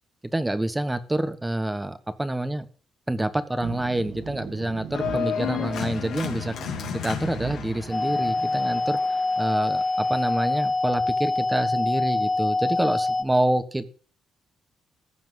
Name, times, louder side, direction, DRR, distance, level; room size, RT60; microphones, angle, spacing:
voice 1, 0.3-2.7 3.1-6.5 7.0-13.9, right 1 dB, 10° right, 11 dB, 1.2 m, -27 dB
sound 1, 3.6-8.8, right 7 dB, 80° right, 2.4 m, -39 dB
Organ, 4.9-10.6, left 8 dB, 75° left, 2.3 m, -33 dB
sound 2, 7.9-13.2, left 2 dB, 15° left, 2.4 m, -25 dB
15.0 x 5.9 x 7.6 m, 0.41 s
cardioid pair, 90°, 0 cm